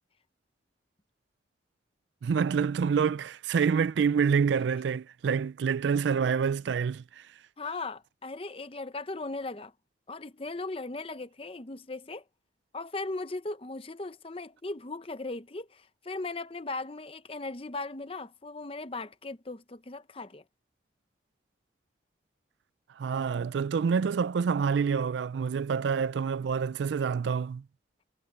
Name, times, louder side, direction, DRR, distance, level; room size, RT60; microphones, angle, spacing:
voice 1, 2.2-7.3 23.0-27.6, right 6 dB, 70° right, 0.3 m, -27 dB
voice 2, 7.6-9.7 10.1-12.2 12.7-20.4, left 3 dB, 30° left, 0.8 m, -38 dB
head